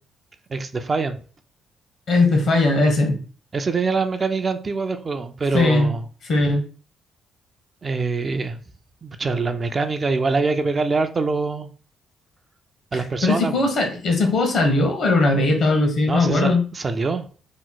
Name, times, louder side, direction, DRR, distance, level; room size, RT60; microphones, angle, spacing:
voice 1, 0.5-1.2 3.5-6.1 7.8-8.6 9.0-11.7 12.9-13.6 16.1-17.3, right 4 dB, 35° right, 0.4 m, -24 dB
voice 2, 2.1-3.2 5.5-5.9 6.3-6.6 13.2-16.6, left 2 dB, 65° left, 1.0 m, -19 dB
3.0 x 2.0 x 3.9 m
cardioid pair, 90°, 0 cm